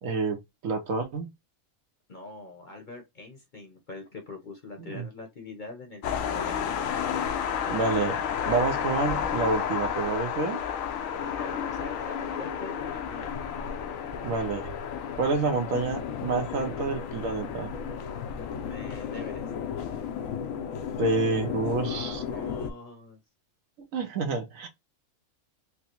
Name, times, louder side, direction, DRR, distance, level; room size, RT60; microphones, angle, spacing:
voice 1, 0.0-1.3 4.9-5.1 7.7-10.6 14.2-14.7 15.2-17.7 21.0-22.2 23.9-24.7, right 3 dB, 75° right, 1.1 m, -28 dB
voice 2, 2.1-6.7 11.2-13.3 18.7-19.5 21.8-23.2, left 3 dB, 40° left, 0.8 m, -43 dB
sound 1, 6.0-22.7, left 8 dB, 75° left, 1.0 m, -32 dB
4.5 x 2.0 x 2.8 m
omnidirectional pair, 1.4 m